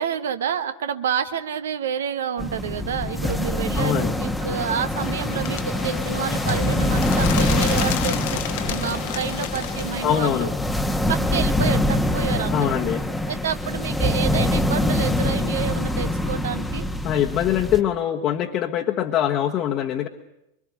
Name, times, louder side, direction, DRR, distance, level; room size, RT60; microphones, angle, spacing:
voice 1, 0.0-8.4 8.7-10.5 11.1-12.8 13.3-16.9, right 8 dB, 60° right, 10 dB, 1.4 m, -29 dB
sound 1, 2.4-17.8, left 1 dB, 5° left, 1.3 m, -24 dB
voice 2, 3.7-4.1 10.0-10.5 12.5-13.0 17.0-20.1, left 10 dB, 35° left, 0 dB, 1.4 m, -23 dB
Bird, 5.0-10.3, left 12 dB, 50° left, 1.2 m, -32 dB
25.0 x 25.0 x 6.8 m, 0.86 s
figure-of-eight pair, 90°, 0 cm